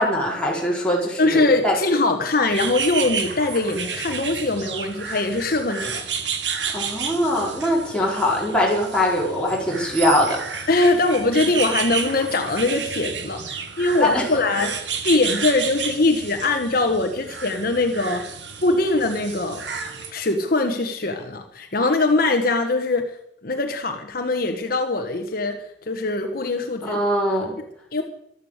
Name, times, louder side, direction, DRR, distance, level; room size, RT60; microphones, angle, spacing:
voice 1, 0.0-1.8 6.7-10.4 14.0-14.2 26.8-27.6, left 1 dB, 5° left, -3 dB, 4.5 m, -22 dB
voice 2, 1.2-6.0 10.7-14.7 15.0-18.2 18.6-19.6 20.1-23.1 23.4-25.6 25.9-27.0 27.9-28.0, left 2 dB, 55° left, 4 dB, 1.4 m, -22 dB
sound 1, 2.5-20.1, right 6 dB, 80° right, 1.9 m, -31 dB
14.5 x 13.0 x 6.6 m, 0.75 s
head